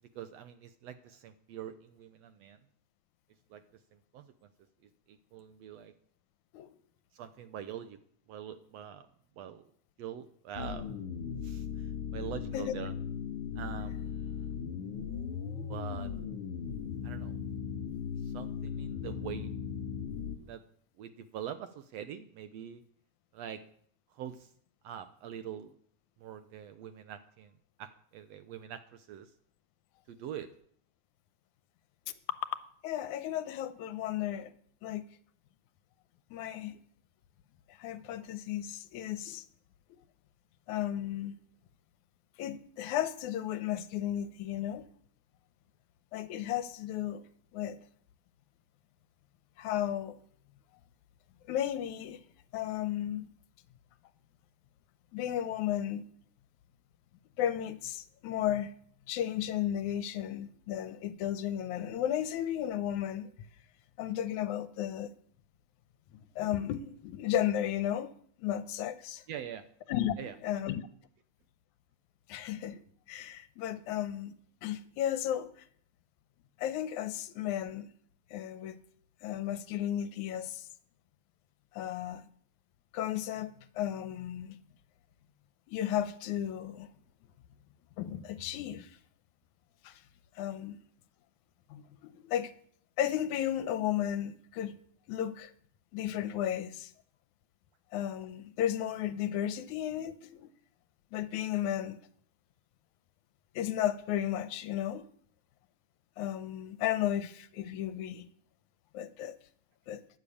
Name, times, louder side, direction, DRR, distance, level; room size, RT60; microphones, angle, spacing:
voice 1, 0.1-2.6 3.5-3.6 3.9-4.5 5.1-5.9 7.1-8.0 8.3-9.1 9.4-9.6 10.0-10.9 11.4-12.9 13.6-14.5 15.6-16.1 17.0-17.4 18.2-19.5 20.4-20.6 21.0-22.8 23.3-23.6 24.1-24.5 24.8-25.7 26.2-27.5 27.8-29.3 30.1-30.5 69.3-69.6 70.2-70.3, right 9 dB, 75° right, 1.6 m, -44 dB
sound 1, 10.5-20.4, left 7 dB, 55° left, 2.2 m, -38 dB
voice 2, 32.8-34.5 34.8-35.0 36.3-36.8 37.7-39.4 40.7-41.4 42.4-44.9 46.1-47.2 47.5-47.8 49.6-50.2 51.5-52.2 52.5-53.3 55.1-56.1 57.4-58.7 59.1-63.3 64.0-65.1 66.4-68.1 68.4-69.2 69.9-70.8 72.3-72.8 73.1-74.3 74.6-75.5 76.6-77.9 78.3-78.8 79.2-80.7 81.7-82.2 82.9-84.6 85.7-86.9 88.0-89.0 89.8-90.0 90.4-90.8 91.7-92.5 93.0-94.8 95.1-95.5 95.9-96.9 97.9-100.5 101.1-102.0 103.6-105.0 106.2-108.3 108.9-109.4 109.9-110.0, left 11 dB, 75° left, 2.1 m, -34 dB
12.0 x 11.0 x 8.5 m
omnidirectional pair, 3.5 m